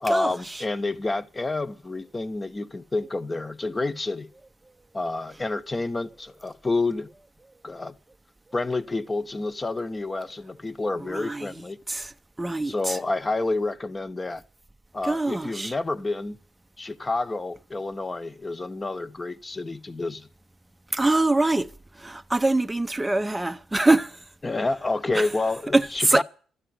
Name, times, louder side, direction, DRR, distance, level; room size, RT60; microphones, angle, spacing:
voice 1, 0.0-4.3 4.9-7.1 7.6-8.0 8.5-11.8 12.6-14.4 14.9-16.4 16.8-20.3 24.4-26.2, left 2 dB, 20° left, 0.9 m, -29 dB
voice 2, 11.1-11.5 11.9-12.1 12.4-13.0 15.0-15.7 20.9-21.7 22.0-24.1 25.1-25.2 25.7-26.2, right 2 dB, 10° right, 0.6 m, -23 dB
13.0 x 9.6 x 9.4 m
cardioid pair, 90°, 0 cm